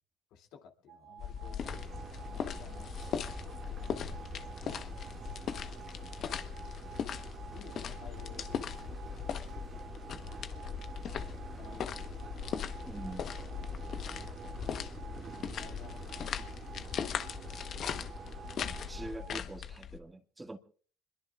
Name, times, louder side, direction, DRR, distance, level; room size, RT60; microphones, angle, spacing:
voice 1, 0.3-2.0 2.3-4.3 4.7-5.8 7.1-9.0 10.2-10.7 11.5-12.4 13.5-14.0 15.3-16.6 19.3-19.4, left 7 dB, 70° left, 2.5 m, -57 dB
sound 1, 0.9-19.4, right 7 dB, 70° right, 4.0 m, -53 dB
sound 2, 1.2-20.0, left 8 dB, 55° left, 1.0 m, -39 dB
sound 3, 1.6-19.2, right 5 dB, 40° right, 2.0 m, -48 dB
voice 2, 12.9-13.2 18.9-20.6, right 2 dB, 15° right, 1.9 m, -44 dB
26.0 x 22.0 x 2.4 m
hypercardioid pair, 70°, 0 cm